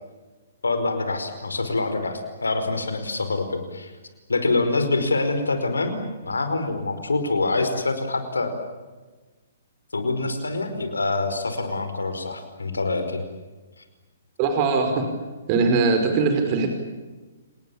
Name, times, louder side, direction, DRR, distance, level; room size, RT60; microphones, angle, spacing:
voice 1, 0.6-3.9 4.3-8.5 9.9-13.2, left 3 dB, 90° left, 8 dB, 4.9 m, -25 dB
voice 2, 14.4-15.0 15.5-16.7, right 4 dB, 35° right, 5 dB, 5.3 m, -21 dB
29.5 x 20.0 x 8.9 m, 1.2 s
hypercardioid pair, 130°, 0 cm